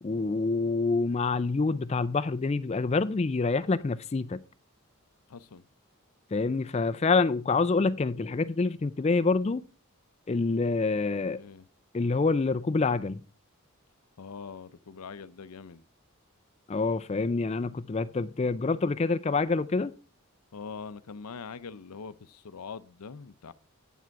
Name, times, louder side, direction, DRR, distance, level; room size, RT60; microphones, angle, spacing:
voice 1, 0.0-4.4 6.3-9.6 10.3-11.4 11.9-13.2 16.7-19.9, left 3 dB, 30° left, 0.4 m, -27 dB
voice 2, 5.3-5.6 11.2-11.6 14.2-15.8 20.5-23.5, left 5 dB, 90° left, 0.6 m, -43 dB
9.1 x 7.5 x 4.6 m
head